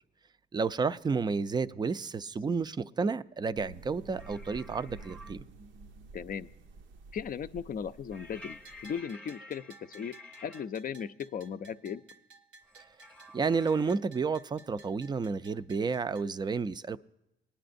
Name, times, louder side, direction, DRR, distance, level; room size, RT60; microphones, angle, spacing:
voice 1, 0.5-5.4 13.3-17.0, right 4 dB, 20° right, 0.4 m, -31 dB
sound 1, 3.5-9.0, right 3 dB, 70° right, 0.6 m, -50 dB
sound 2, 4.1-5.3 8.1-10.6 12.6-13.9, left 2 dB, 5° left, 0.7 m, -51 dB
voice 2, 6.1-6.5 7.1-9.6 9.9-10.1 10.4-12.0, left 7 dB, 45° left, 0.5 m, -37 dB
Bell, 8.6-16.3, right 3 dB, 90° right, 1.3 m, -56 dB
19.5 x 10.0 x 2.6 m
cardioid pair, 90°, 20 cm